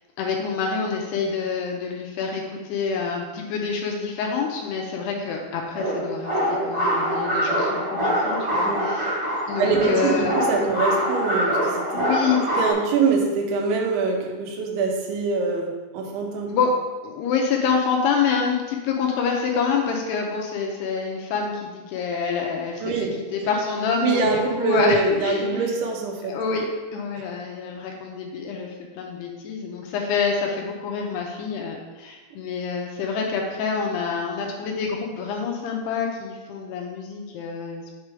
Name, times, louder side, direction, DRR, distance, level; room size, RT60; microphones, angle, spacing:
voice 1, 0.2-9.1 9.5-10.3 11.9-12.4 16.5-16.7 17.0-22.9 23.3-25.7 26.3-37.9, left 5 dB, 80° left, 1 dB, 2.7 m, -27 dB
sound 1, 5.7-12.7, equal, 15° right, 1.1 m, -24 dB
voice 2, 9.6-12.0 12.6-16.5 22.8-23.1 24.0-26.4 27.2-27.3, right 4 dB, 90° right, 0 dB, 3.4 m, -24 dB
7.4 x 4.8 x 4.8 m, 1.3 s
omnidirectional pair, 5.2 m